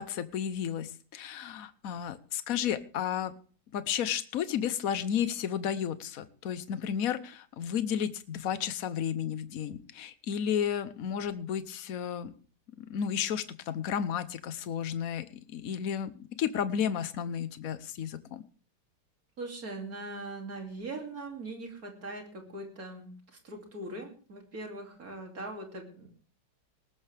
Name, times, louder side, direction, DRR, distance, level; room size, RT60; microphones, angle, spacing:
voice 1, 0.0-3.3 3.7-12.3 12.8-18.4, left 8 dB, 55° left, 13 dB, 1.1 m, -32 dB
voice 2, 19.4-23.1 23.4-26.1, right 2 dB, 45° right, 2 dB, 3.2 m, -41 dB
19.5 x 12.0 x 3.4 m, 0.39 s
omnidirectional pair, 2.3 m